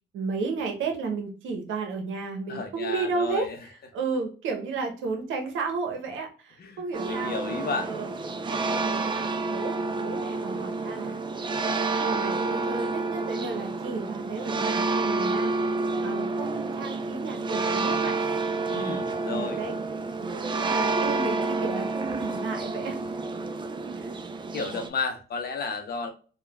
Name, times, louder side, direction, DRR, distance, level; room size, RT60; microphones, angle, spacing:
voice 1, 0.1-3.5 3.9-7.4 7.9-8.1 8.4-11.2 12.0-15.5 16.0-18.2 18.7-19.0 19.3-19.7 20.2-23.0 24.0-24.1, right 4 dB, 85° right, 3 dB, 0.8 m, -33 dB
voice 2, 2.5-3.6 6.6-7.9 18.7-19.6 24.5-26.1, left 4 dB, 50° left, 6 dB, 0.6 m, -32 dB
sound 1, 6.9-24.9, right 3 dB, 25° right, 0.4 m, -29 dB
3.2 x 2.2 x 2.2 m, 0.38 s
cardioid pair, 90°, 20 cm